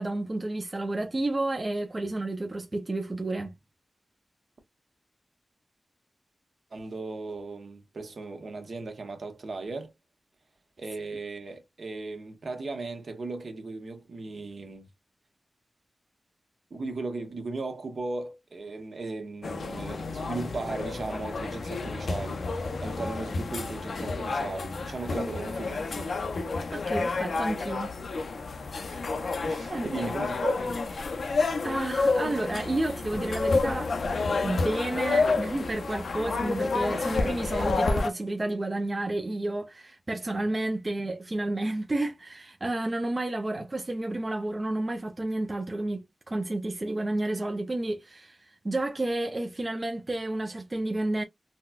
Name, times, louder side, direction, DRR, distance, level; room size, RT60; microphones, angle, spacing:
voice 1, 0.0-3.5 26.7-27.9 29.7-30.1 31.6-33.9 34.4-51.2, right 2 dB, 30° right, 0.5 m, -31 dB
voice 2, 6.7-9.9 10.8-14.9 16.7-22.4 22.8-26.1 28.8-29.0 29.4-30.8, right 3 dB, 65° right, 1.0 m, -37 dB
sound 1, 19.4-38.1, left 3 dB, 75° left, 0.5 m, -30 dB
4.0 x 2.2 x 2.3 m
wide cardioid pair, 95°, 0 cm